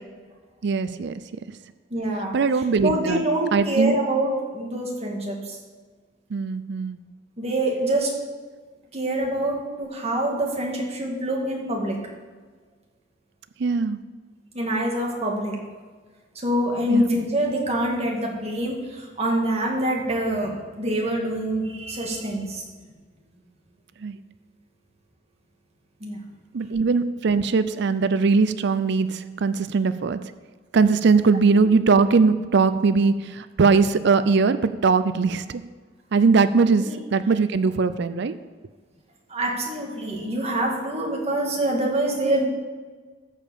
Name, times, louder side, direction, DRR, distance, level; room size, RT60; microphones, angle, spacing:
voice 1, 0.6-1.1 2.3-3.2 3.5-4.0 6.3-7.0 13.6-14.0 16.9-17.1 24.0-24.2 26.5-30.2 30.7-35.6 36.1-38.3, right 4 dB, 65° right, 13 dB, 0.5 m, -20 dB
voice 2, 1.9-2.4 2.8-5.6 7.4-8.1 8.9-12.0 14.5-15.6 16.4-22.6 26.0-26.2 36.8-36.9 39.3-42.5, right 1 dB, 35° right, -1 dB, 2.1 m, -25 dB
14.0 x 5.0 x 7.0 m, 1.4 s
head